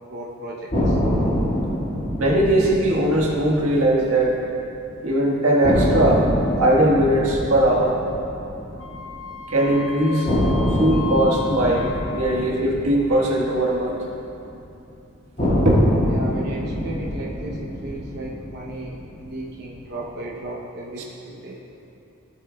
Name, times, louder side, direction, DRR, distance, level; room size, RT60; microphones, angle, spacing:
voice 1, 0.1-1.0 16.1-21.6, right 1 dB, 50° right, -4 dB, 0.9 m, -35 dB
sound 1, 0.7-4.8 5.1-5.2 5.6-9.7 10.3-14.6 15.4-19.7, equal, 35° left, 2.0 m, -26 dB
voice 2, 2.2-4.4 5.0-6.3 6.6-8.0 9.5-10.3 10.8-14.0 15.6-15.8, right 1 dB, 85° right, -2 dB, 1.5 m, -19 dB
Wind instrument woodwind instrument, 8.8-12.7, left 6 dB, 70° left, 0.9 m, -36 dB
15.5 x 7.4 x 2.3 m, 2.7 s
head